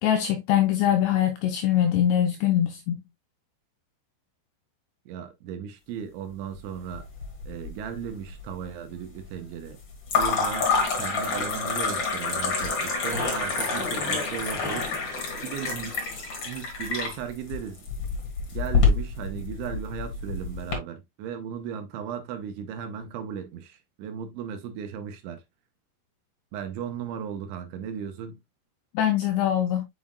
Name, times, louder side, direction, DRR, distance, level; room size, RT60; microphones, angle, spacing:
voice 1, 0.0-3.0 28.9-29.8, left 10 dB, 85° left, 2.4 m, -23 dB
voice 2, 5.1-7.1 7.5-9.8 10.2-15.0 15.4-16.0 16.5-17.9 18.5-25.4 26.5-28.4, right 8 dB, 75° right, 3.3 m, -36 dB
sound 1, 6.9-7.7 8.0-8.6 10.1-20.8, left 4 dB, 40° left, 2.4 m, -27 dB
sound 2, 11.3-12.4 12.7-16.4, left 3 dB, 60° left, 1.1 m, -37 dB
7.6 x 5.6 x 2.3 m
omnidirectional pair, 5.6 m